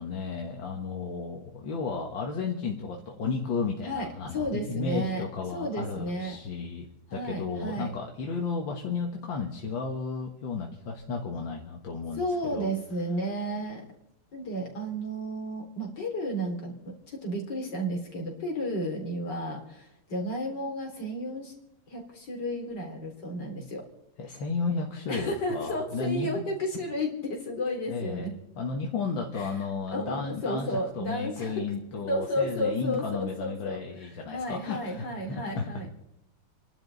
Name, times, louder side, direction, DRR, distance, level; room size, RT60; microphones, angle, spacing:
voice 1, 0.0-6.9 7.1-12.3 12.5-12.7 24.2-26.3 27.9-28.3 28.6-35.6, left 4 dB, 80° left, 1 dB, 2.3 m, -33 dB
voice 2, 3.8-6.4 7.1-8.0 12.2-13.9 14.3-21.5 21.9-23.8 25.1-28.4 29.3-29.6 29.9-31.7 32.0-35.9, equal, 60° left, 1 dB, 4.0 m, -33 dB
28.5 x 11.5 x 4.0 m, 0.79 s
omnidirectional pair, 2.1 m